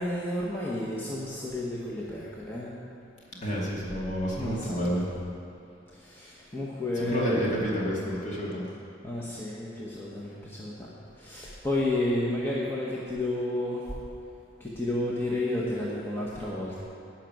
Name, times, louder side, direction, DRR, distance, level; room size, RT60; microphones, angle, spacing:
voice 1, 0.0-2.7 4.4-4.8 5.9-7.5 9.0-10.9 11.2-13.9 14.6-16.8, left 1 dB, 10° left, -6 dB, 1.1 m, -31 dB
voice 2, 3.4-5.0 6.9-8.6, equal, 40° left, -5 dB, 2.5 m, -29 dB
11.5 x 5.9 x 9.1 m, 2.7 s
head